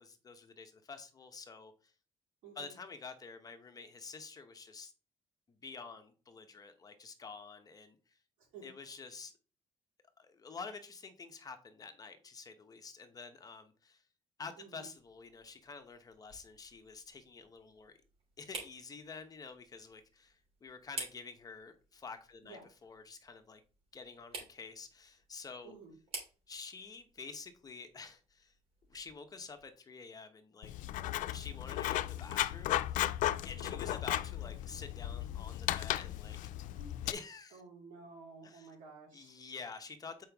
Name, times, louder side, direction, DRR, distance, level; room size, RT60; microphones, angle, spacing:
voice 1, 0.0-1.9 2.6-4.9 5.5-8.2 8.6-9.3 10.2-14.0 14.4-18.0 18.4-23.6 23.9-25.8 26.5-28.5 28.9-30.7 31.3-33.1 33.4-36.4 37.0-37.6 38.4-38.7 39.1-40.3, left 4 dB, 30° left, 0.9 m, -49 dB
voice 2, 14.6-14.9 22.4-22.6 25.6-25.9 33.6-33.8 36.7-37.1 37.5-39.4, right 4 dB, 85° right, 4.1 m, -53 dB
sound 1, 15.0-29.8, right 3 dB, 50° right, 3.0 m, -52 dB
Writing, 30.6-37.1, left 14 dB, 80° left, 0.4 m, -35 dB
7.6 x 4.8 x 3.5 m
cardioid pair, 135°, 13 cm